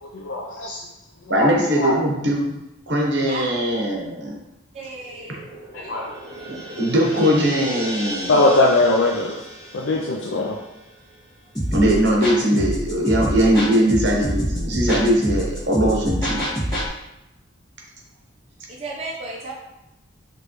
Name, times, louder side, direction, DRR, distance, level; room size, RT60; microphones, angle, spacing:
voice 1, 0.0-0.9 1.3-1.5 1.8-2.0 5.7-6.0 8.3-9.4 9.7-10.6, left 2 dB, 70° left, -1 dB, 0.5 m, -20 dB
voice 2, 1.3-2.5 2.9-4.4 6.8-8.4 11.7-16.4, equal, 60° right, -1 dB, 1.0 m, -20 dB
voice 3, 4.7-5.5 6.5-6.7 18.7-19.5, right 2 dB, 30° right, -5 dB, 0.7 m, -34 dB
sound 1, 5.0-11.5, right 1 dB, 40° left, 1.4 m, -36 dB
sound 2, 11.5-16.9, equal, 20° left, 1.5 m, -25 dB
5.0 x 3.2 x 3.1 m, 0.93 s
head